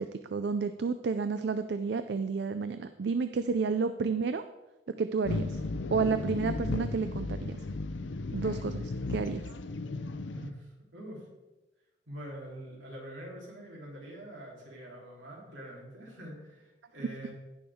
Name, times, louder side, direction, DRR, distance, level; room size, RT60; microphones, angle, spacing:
voice 1, 0.0-4.4 4.9-5.6 5.9-7.7 8.3-9.5, right 5 dB, 60° right, 10 dB, 0.4 m, -31 dB
sound 1, 5.3-10.5, left 2 dB, 75° left, 0.6 m, -35 dB
voice 2, 10.3-11.3 12.1-17.3, equal, 85° right, -3 dB, 3.4 m, -45 dB
16.5 x 6.1 x 3.6 m, 1.1 s
head